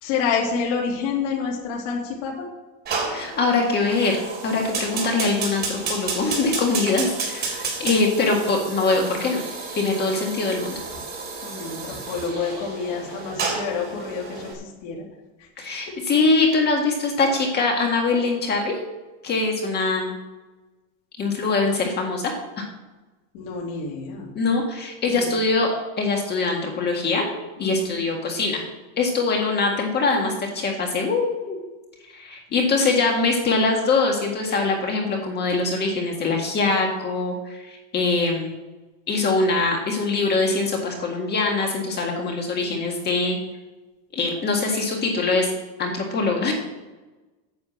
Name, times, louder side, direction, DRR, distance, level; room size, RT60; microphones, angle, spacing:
voice 1, 0.0-2.5 11.4-15.0 15.9-16.0 23.3-24.3 25.0-25.3 27.6-28.0, left 5 dB, 65° left, -2 dB, 2.8 m, -28 dB
Fire, 2.9-14.5, right 4 dB, 25° right, 3.6 m, -31 dB
voice 2, 3.1-9.4 9.8-10.8 15.6-18.8 19.2-20.1 21.2-22.3 22.6-22.7 24.3-27.3 27.6-28.6 29.0-31.6 32.1-38.5 39.1-43.4 44.1-45.5 45.8-46.5, left 3 dB, 25° left, 1 dB, 1.7 m, -23 dB
9.4 x 7.7 x 7.5 m, 1.2 s
cardioid pair, 165°, 39 cm